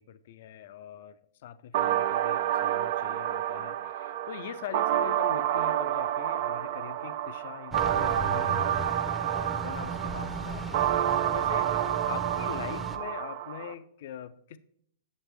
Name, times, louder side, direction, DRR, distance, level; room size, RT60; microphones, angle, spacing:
voice 1, 0.0-8.8 9.3-14.6, left 10 dB, 60° left, 14 dB, 0.5 m, -43 dB
sound 1, 1.7-13.7, right 11 dB, 55° right, 0.5 m, -29 dB
sound 2, 7.7-13.0, right 2 dB, ahead, 0.7 m, -37 dB
7.3 x 7.2 x 3.4 m, 0.66 s
hypercardioid pair, 115°, 0 cm